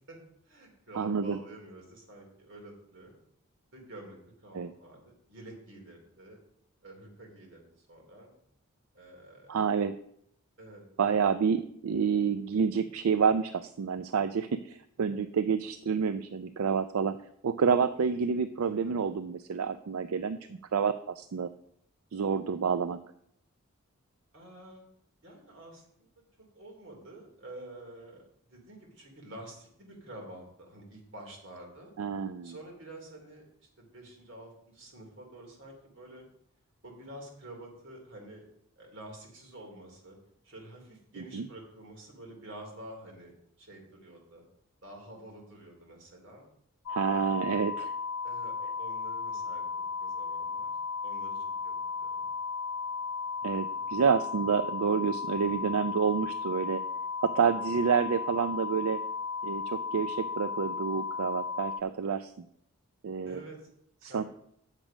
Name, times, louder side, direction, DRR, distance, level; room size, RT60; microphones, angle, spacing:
voice 1, 0.4-3.2 3.7-6.4 6.8-8.3 8.9-9.6 10.6-11.2 18.6-19.0 24.3-24.9 25.2-26.1 26.4-28.2 28.5-31.9 32.4-36.3 36.8-38.4 38.8-40.2 40.4-44.4 44.8-46.5 47.1-47.3 48.2-50.7 51.0-52.3 53.5-54.0 55.4-55.6 63.2-63.7 64.0-64.2, right 1 dB, 60° right, 0 dB, 3.0 m, -49 dB
voice 2, 0.9-1.4 4.5-4.7 9.5-9.9 11.0-17.2 17.4-21.5 22.1-23.0 32.0-32.6 41.3-41.5 46.9-47.9 53.4-56.8 57.2-59.0 59.4-62.3 63.0-63.4 64.0-64.2, right 6 dB, 80° right, 10 dB, 0.4 m, -28 dB
sound 1, 46.9-61.8, left 5 dB, 70° left, 0.4 m, -35 dB
9.0 x 7.4 x 5.0 m, 0.69 s
head